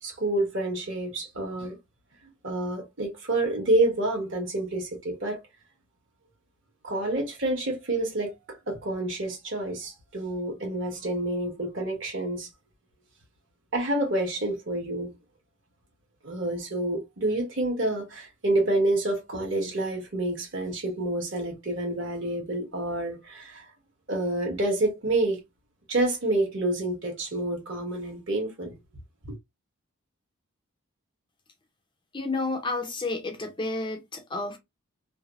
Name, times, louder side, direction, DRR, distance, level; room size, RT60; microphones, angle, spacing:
voice 1, 0.0-1.8 2.4-5.4 6.8-12.5 13.7-15.1 16.2-23.6 24.1-25.4 25.9-28.7 29.2-29.3, right 2 dB, 60° right, 1.4 m, -28 dB
voice 2, 32.1-34.6, left 3 dB, 20° left, 0.5 m, -31 dB
3.2 x 2.0 x 2.4 m
head